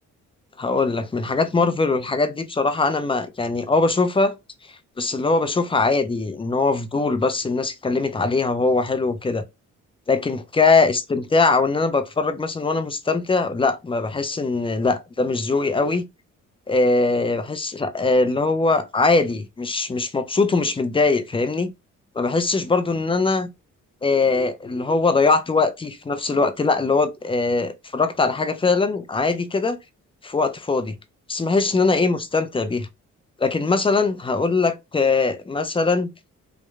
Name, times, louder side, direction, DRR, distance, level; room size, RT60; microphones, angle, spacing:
voice 1, 0.6-4.3 5.0-9.4 10.1-16.0 16.7-21.7 22.2-23.5 24.0-29.8 30.2-30.9 31.3-32.9 33.4-36.1, left 3 dB, 15° left, 0.4 m, -21 dB
2.8 x 2.1 x 2.3 m
supercardioid pair, 60°, 34 cm